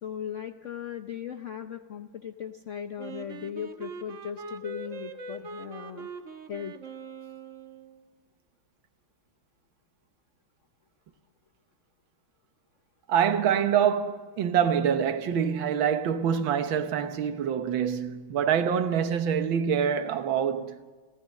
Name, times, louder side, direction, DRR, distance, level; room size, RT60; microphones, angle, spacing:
voice 1, 0.0-6.1 6.5-6.7, left 9 dB, 65° left, 0.7 m, -38 dB
Wind instrument woodwind instrument, 3.0-8.0, right 4 dB, 45° right, 1.4 m, -42 dB
voice 2, 13.1-20.8, right 8 dB, 80° right, 1.8 m, -25 dB
29.5 x 13.5 x 6.4 m
omnidirectional pair, 2.1 m